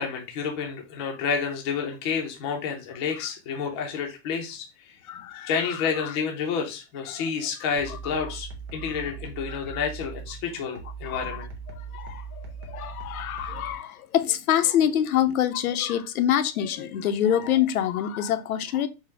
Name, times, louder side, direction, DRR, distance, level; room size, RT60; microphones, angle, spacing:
voice 1, 0.0-4.7 5.5-11.5, left 6 dB, 20° left, 0.5 m, -29 dB
voice 2, 5.1-6.1 7.1-7.2 7.9-8.0 9.5-9.8 11.0-11.5 11.7-18.9, left 10 dB, 80° left, 0.7 m, -26 dB
sound 1, 7.8-13.8, right 5 dB, 35° right, 1.1 m, -40 dB
4.6 x 2.1 x 4.5 m
supercardioid pair, 170°, 42 cm